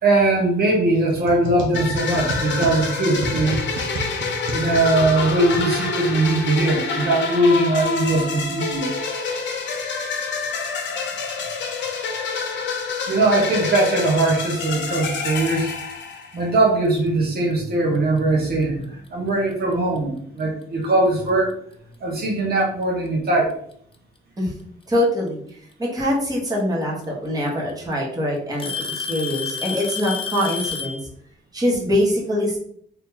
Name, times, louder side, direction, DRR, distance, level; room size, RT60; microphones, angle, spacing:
voice 1, 0.0-3.6 4.5-8.9 13.1-15.7 16.3-21.5 22.0-23.5, right 2 dB, 50° right, -2 dB, 1.1 m, -20 dB
sound 1, 1.1-6.2, right 2 dB, 75° right, 0.8 m, -31 dB
sound 2, 1.7-16.5, left 4 dB, 65° left, 0.8 m, -27 dB
Alarm / Tick-tock, 17.1-17.3 18.2-18.3 19.1-19.2 20.8-20.9 22.2-22.3 23.5-24.0 25.7-25.8 27.0-27.1 27.5-27.9 28.6-31.0, left 6 dB, 25° left, 0.5 m, -30 dB
voice 2, 24.9-31.0 31.5-32.6, left 1 dB, 20° right, -3 dB, 1.3 m, -23 dB
2.8 x 2.8 x 3.8 m, 0.63 s
cardioid pair, 90°, 20 cm